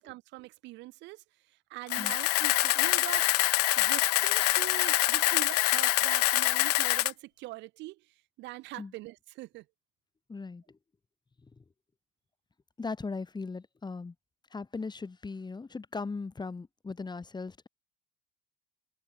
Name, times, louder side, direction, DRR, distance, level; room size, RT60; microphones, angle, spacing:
voice 1, 0.0-3.3 3.8-9.7, right 19 dB, 65° right, 2.5 m, -43 dB
Camera, 1.9-7.1, left 21 dB, 85° left, 0.5 m, -25 dB
voice 2, 10.3-10.6 12.8-14.1 14.5-17.7, left 4 dB, 20° left, 2.8 m, -38 dB
open air
hypercardioid pair, 75°, 20 cm